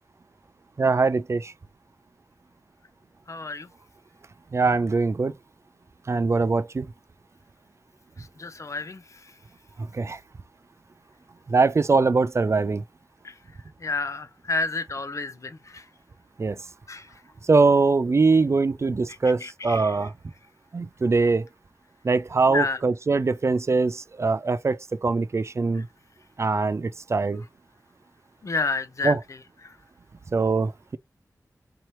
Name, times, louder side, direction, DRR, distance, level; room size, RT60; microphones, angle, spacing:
voice 1, 0.8-1.5 4.5-5.3 6.1-6.9 9.9-10.2 11.5-12.8 16.4-16.6 17.5-20.1 20.7-21.5 22.0-25.9 26.4-27.4 29.0-29.2 30.3-31.0, right 4 dB, 45° right, 0.4 m, -22 dB
voice 2, 3.3-3.7 8.2-9.3 13.2-13.3 13.8-15.9 16.9-17.1 19.1-20.1 22.5-22.8 28.4-29.7, left 3 dB, 55° left, 0.7 m, -31 dB
4.3 x 2.9 x 3.1 m
wide cardioid pair, 95°, 6 cm